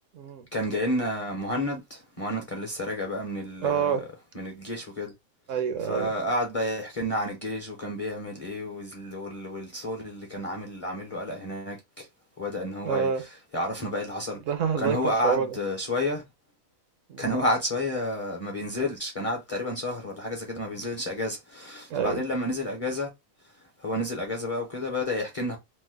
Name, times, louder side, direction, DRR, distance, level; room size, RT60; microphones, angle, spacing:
voice 1, 0.5-4.1 4.3-5.1 5.9-12.1 12.4-13.1 13.5-14.4 14.8-16.2 17.2-23.1 23.8-25.6, left 1 dB, 35° left, 0.6 m, -30 dB
voice 2, 3.6-4.0 5.5-6.1 12.8-13.2 14.3-15.6 17.1-17.4 21.9-22.2, right 7 dB, 70° right, 0.9 m, -27 dB
3.1 x 2.1 x 3.3 m
omnidirectional pair, 1.4 m